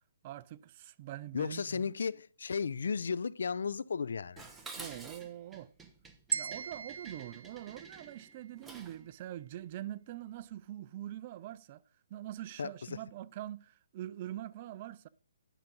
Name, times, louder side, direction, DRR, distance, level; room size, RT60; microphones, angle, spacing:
voice 1, 0.2-1.9 4.8-5.7 6.3-11.8 12.1-15.1, right 13 dB, 35° right, 0.4 m, -44 dB
voice 2, 1.3-4.4 12.6-13.0, left 5 dB, 70° left, 0.5 m, -34 dB
Dishes pots and pans, 4.4-9.0, right 4 dB, 10° right, 0.9 m, -50 dB
sound 1, 6.3-8.5, right 6 dB, 65° right, 0.7 m, -39 dB
10.0 x 5.9 x 5.2 m
hypercardioid pair, 155°, 0 cm